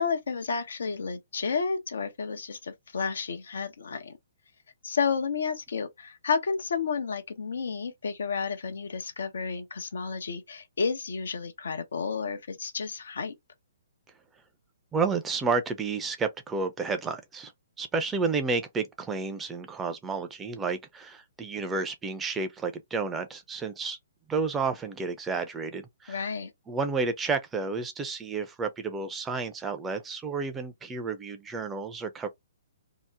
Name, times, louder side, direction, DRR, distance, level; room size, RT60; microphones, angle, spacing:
voice 1, 0.0-4.2 4.8-13.3 26.1-26.5, left 5 dB, 75° left, 0.8 m, -31 dB
voice 2, 14.9-17.5 17.8-24.0 24.3-26.3 26.7-32.3, right 4 dB, 15° right, 0.6 m, -31 dB
2.9 x 2.0 x 3.4 m
hypercardioid pair, 135°, 0 cm